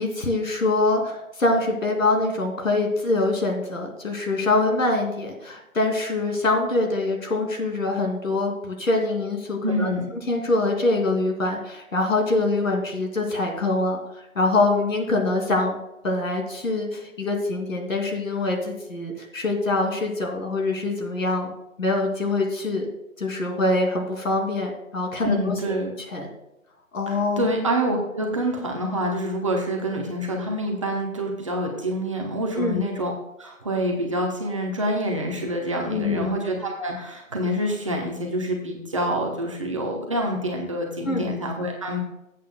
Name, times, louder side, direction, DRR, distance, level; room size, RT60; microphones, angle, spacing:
voice 1, 0.0-9.9 10.3-14.0 14.3-15.8 16.0-21.5 21.8-22.9 23.2-25.7 26.1-26.3 26.9-27.5 32.6-32.8 35.9-36.3 41.0-41.3, left 2 dB, 70° left, 2 dB, 2.8 m, -24 dB
voice 2, 9.6-10.1 25.2-25.9 27.1-33.1 33.4-42.0, equal, 25° right, 0 dB, 0.9 m, -27 dB
17.5 x 8.3 x 2.3 m, 0.89 s
figure-of-eight pair, 165°, 42 cm